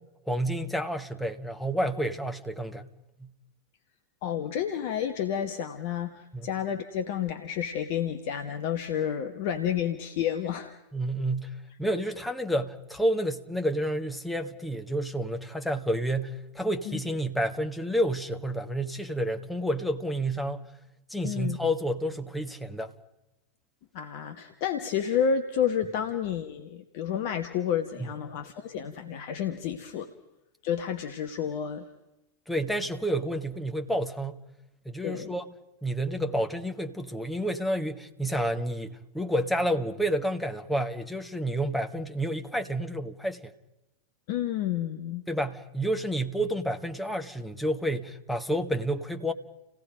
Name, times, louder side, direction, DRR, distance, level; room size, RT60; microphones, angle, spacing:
voice 1, 0.3-2.9 3.2-3.3 6.3-6.5 10.9-20.6 21.1-22.9 28.0-28.1 32.5-34.4 34.8-35.5 35.8-43.5 45.3-49.3, right 1 dB, 5° left, 1.5 m, -30 dB
voice 2, 4.2-10.8 16.9-17.0 21.2-21.6 23.9-30.1 30.6-31.9 35.0-35.3 44.3-45.2, left 8 dB, 50° left, 1.4 m, -30 dB
30.0 x 17.5 x 5.2 m
figure-of-eight pair, 90°, 0 cm